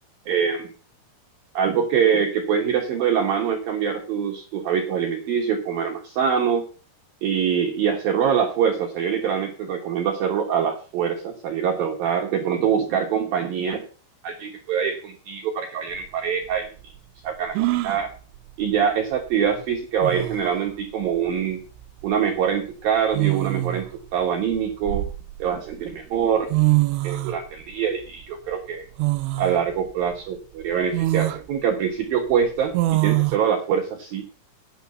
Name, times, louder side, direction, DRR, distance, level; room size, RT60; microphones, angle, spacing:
voice 1, 0.3-0.7 1.5-6.6 7.2-13.8 14.2-16.7 17.2-18.1 18.6-21.6 22.0-23.9 24.1-25.1 25.4-26.5 27.0-28.9 29.4-34.2, right 7 dB, 65° right, 1 dB, 2.5 m, -24 dB
sound 1, 15.9-16.0 17.5-18.0 19.6-19.7 20.0-20.5 21.8-22.0 23.1-23.9 24.5-25.6 26.2-26.3 26.5-27.4 29.0-29.6 30.1-30.2 30.9-31.4 32.7-33.4, right 18 dB, 80° right, 3.0 m, -23 dB
9.6 x 8.1 x 6.8 m, 0.39 s
omnidirectional pair, 5.5 m